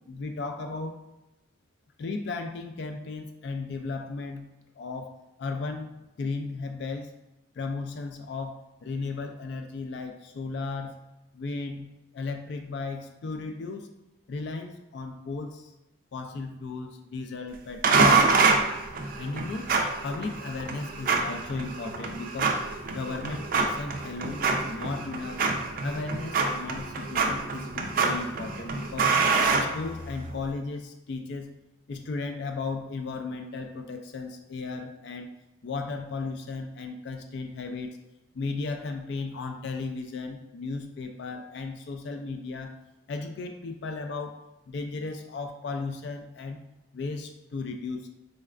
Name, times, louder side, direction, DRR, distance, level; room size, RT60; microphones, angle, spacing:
voice 1, 0.1-1.0 2.0-7.1 7.6-11.0 11.3-13.9 14.3-15.7 16.1-18.2 19.2-19.7 20.0-22.6 22.9-25.5 25.8-29.2 29.5-31.6 31.9-35.3 35.6-38.0 38.3-42.8 43.1-46.6 46.9-48.1, left 3 dB, 55° left, 5 dB, 0.3 m, -35 dB
sound 1, 17.8-30.3, right 4 dB, 45° right, 0.4 m, -26 dB
4.0 x 3.2 x 2.4 m, 0.94 s
head